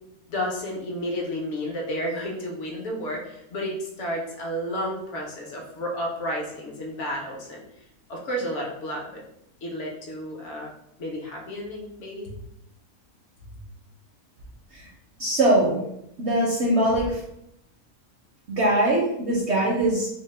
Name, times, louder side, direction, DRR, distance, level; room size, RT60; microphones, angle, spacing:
voice 1, 0.3-7.6 8.1-9.2 9.6-10.7 11.0-12.3 13.5-13.6, equal, 60° left, -1 dB, 0.8 m, -31 dB
voice 2, 15.2-15.8 16.2-17.2 18.5-20.1, right 1 dB, 65° right, -4 dB, 0.7 m, -22 dB
2.7 x 2.1 x 3.2 m, 0.81 s
omnidirectional pair, 1.6 m